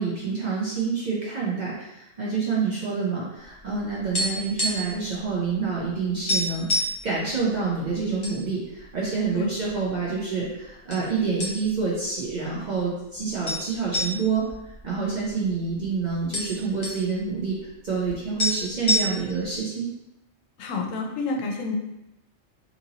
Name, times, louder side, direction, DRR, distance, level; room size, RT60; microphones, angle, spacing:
voice 1, 0.0-19.9, right 5 dB, 50° right, -6 dB, 0.6 m, -27 dB
sound 1, 3.6-5.0 5.3-5.5 5.8-5.9 6.3-7.0 7.7-8.4 8.8-8.9 9.6-10.2 10.9-11.1 11.4-11.9 12.3-12.4 13.4-15.5 15.8-15.9 16.1-17.0 18.1-18.2 18.4-19.4, left 1 dB, 35° left, 0.5 m, -27 dB
voice 2, 20.6-21.7, left 3 dB, 80° left, 0 dB, 1.0 m, -29 dB
2.9 x 2.6 x 2.8 m, 0.91 s
omnidirectional pair, 1.3 m